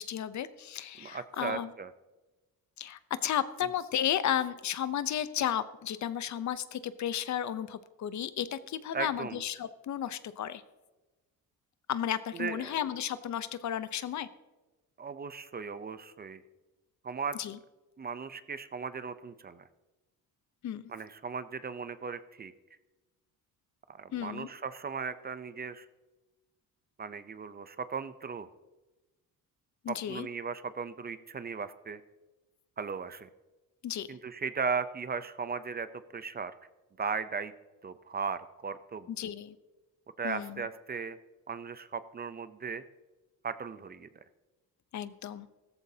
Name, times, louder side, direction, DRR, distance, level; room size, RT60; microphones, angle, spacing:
voice 1, 0.0-1.7 2.8-10.6 11.9-14.3 17.4-17.6 20.6-20.8 24.1-24.5 29.8-30.3 33.8-34.1 39.2-39.5 40.2-40.6 44.9-45.5, left 10 dB, 55° left, 14 dB, 0.7 m, -33 dB
voice 2, 1.0-1.9 8.9-9.4 12.3-12.8 15.0-16.4 17.0-17.4 18.0-19.7 20.9-22.5 23.9-25.9 27.0-28.5 29.9-32.0 32.8-33.3 34.1-35.9 36.1-36.5 37.0-37.5 37.8-39.1 40.2-41.2 41.5-42.8 43.4-44.1, right 5 dB, 25° right, 13 dB, 0.6 m, -37 dB
15.0 x 14.0 x 2.8 m, 1.1 s
cardioid pair, 100°, 35 cm